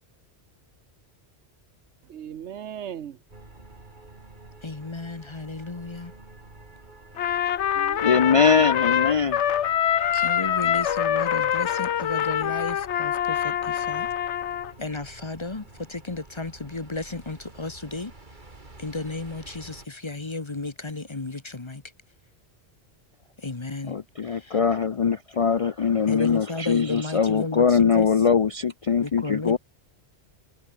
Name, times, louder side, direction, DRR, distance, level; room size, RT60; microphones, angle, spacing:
voice 1, 2.0-3.2 7.7-8.7, right 9 dB, 80° right, 1.1 m, -38 dB
sound 1, 3.3-19.9, right 2 dB, 45° right, 3.1 m, -49 dB
voice 2, 4.6-6.1 10.1-14.1 14.8-18.1 18.8-21.8 23.4-24.0 24.2-24.6 26.1-28.1 29.0-29.6, left 3 dB, 25° left, 1.1 m, -33 dB
Trumpet, 7.2-14.7, left 10 dB, 80° left, 1.1 m, -25 dB
voice 3, 8.0-9.4 23.9-29.6, left 6 dB, 45° left, 0.5 m, -22 dB
omnidirectional pair, 1.2 m